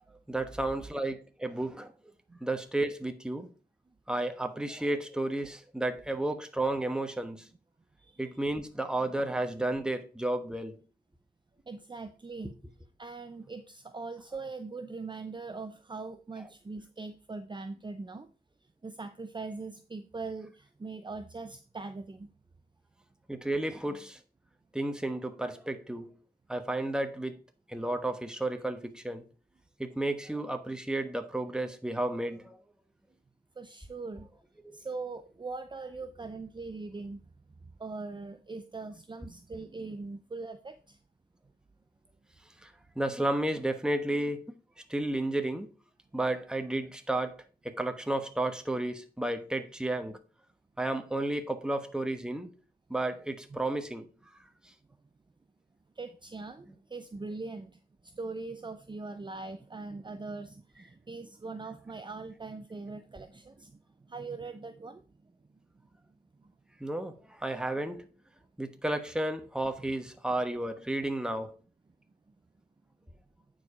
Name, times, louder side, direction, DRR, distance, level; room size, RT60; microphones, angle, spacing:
voice 1, 0.3-1.9 2.4-3.5 4.1-7.5 8.2-10.8 23.3-24.2 24.7-26.1 26.5-27.4 27.7-29.2 29.8-32.6 34.6-34.8 42.6-42.7 42.9-44.4 44.9-45.7 46.1-47.4 47.6-50.2 50.8-52.5 52.9-54.1 66.8-68.1 68.6-71.6, right 1 dB, 5° right, 1.2 m, -32 dB
voice 2, 8.0-8.4 11.7-12.5 13.0-18.3 18.8-22.3 33.6-34.3 34.7-37.3 37.8-41.0 56.0-57.7 58.0-63.8 64.1-65.1 66.4-66.5, right 3 dB, 25° right, 0.6 m, -41 dB
9.3 x 4.7 x 4.9 m
wide cardioid pair, 85°, 17 cm